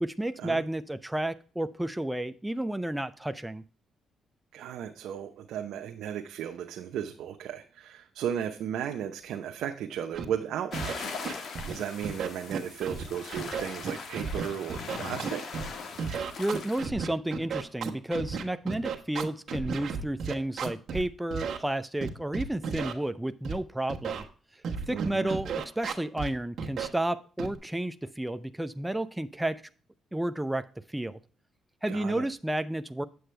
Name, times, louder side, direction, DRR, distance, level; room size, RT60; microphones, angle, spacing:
voice 1, 0.0-3.6 16.4-24.2 24.9-29.6 30.1-30.6 30.9-31.2 31.8-33.1, right 1 dB, 5° right, 12 dB, 0.5 m, -31 dB
voice 2, 4.5-15.5 24.9-25.3 31.9-32.3, right 9 dB, 80° right, 4 dB, 0.8 m, -35 dB
Scratching (performance technique), 10.1-10.2 10.7-10.9 11.2-11.7 12.0-13.0 13.3-15.7 16.0-21.0 21.3-21.6 22.0-22.9 23.4-23.6 23.9-24.2 24.6-26.3 26.6-26.9 27.4-27.6, right 6 dB, 60° right, 1.3 m, -33 dB
sound 1, 10.7-16.9, left 4 dB, 60° left, 1.6 m, -40 dB
7.9 x 7.7 x 3.3 m, 0.39 s
cardioid pair, 90°, 0 cm